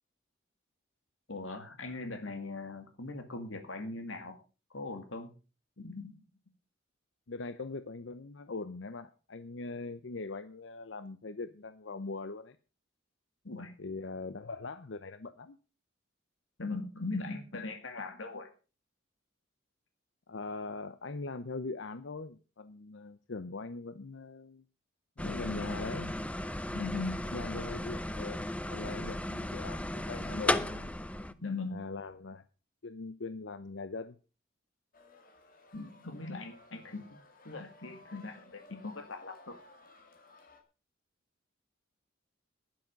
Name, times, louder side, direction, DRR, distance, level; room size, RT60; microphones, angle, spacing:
voice 1, 1.3-4.4 4.7-5.3 5.8-6.2 13.4-13.7 16.6-18.5 26.7-27.2 31.4-31.7 35.7-37.2 37.4-39.6, left 3 dB, 85° left, 7 dB, 2.2 m, -40 dB
voice 2, 7.3-12.6 13.8-15.6 20.3-24.6 25.2-26.1 27.3-30.9 31.7-32.4 32.8-34.2, left 3 dB, 65° left, 13 dB, 0.7 m, -41 dB
sound 1, 25.2-31.3, left 1 dB, 5° left, 0.7 m, -35 dB
sound 2, 34.9-40.6, left 3 dB, 50° left, 2.6 m, -57 dB
12.0 x 10.5 x 5.2 m, 0.34 s
head